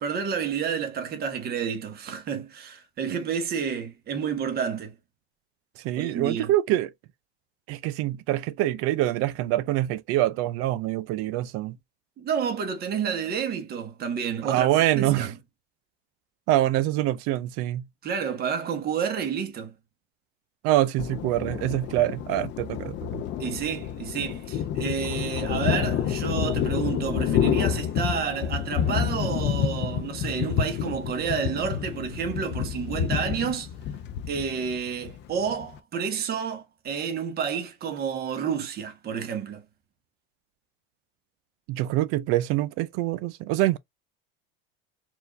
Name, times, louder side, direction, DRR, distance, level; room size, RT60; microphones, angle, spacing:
voice 1, 0.0-4.9 5.9-6.5 12.2-15.3 18.0-19.7 23.4-33.7 34.3-39.6, right 7 dB, 30° right, 1.2 m, -30 dB
voice 2, 5.8-6.9 7.7-11.8 14.4-15.3 16.5-17.8 20.6-23.2 41.7-43.8, right 14 dB, 50° right, 0.5 m, -25 dB
Thunder, 21.0-35.8, left 9 dB, 40° left, 0.6 m, -29 dB
4.5 x 2.6 x 3.2 m
supercardioid pair, 135°, 30 cm